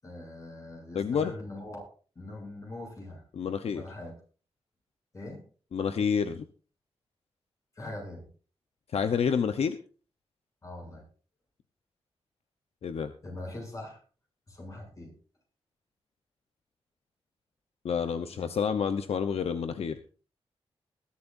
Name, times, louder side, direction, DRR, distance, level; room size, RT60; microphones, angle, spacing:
voice 1, 0.0-1.8 2.1-3.2 3.6-4.1 5.1-5.4 7.7-8.3 10.6-11.1 13.2-14.0 14.5-15.1 18.3-18.5, left 1 dB, 30° left, 1 dB, 7.8 m, -42 dB
voice 2, 0.9-1.3 3.3-3.8 5.7-6.5 8.9-9.8 12.8-13.1 17.8-20.0, left 6 dB, 75° left, 8 dB, 0.9 m, -28 dB
21.0 x 12.5 x 2.7 m, 0.39 s
wide cardioid pair, 165°, 10 cm